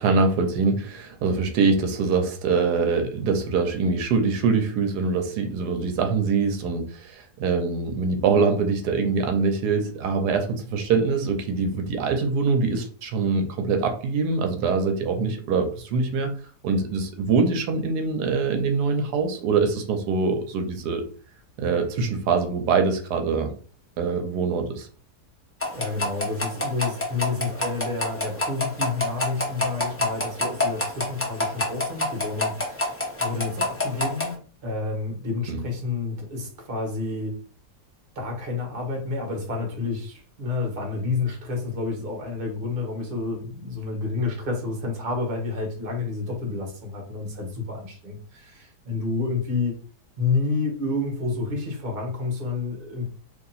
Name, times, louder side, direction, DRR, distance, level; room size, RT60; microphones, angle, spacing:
voice 1, 0.0-16.3 16.6-21.0 21.6-23.5 24.0-24.9 35.5-35.6, right 4 dB, 85° right, 5 dB, 1.2 m, -24 dB
sound 1, 25.6-34.3, left 2 dB, 15° left, 0.4 m, -28 dB
voice 2, 25.7-37.3 38.1-49.8 50.2-53.1, left 3 dB, 40° right, 1 dB, 1.1 m, -29 dB
2.9 x 2.7 x 4.0 m, 0.41 s
omnidirectional pair, 1.7 m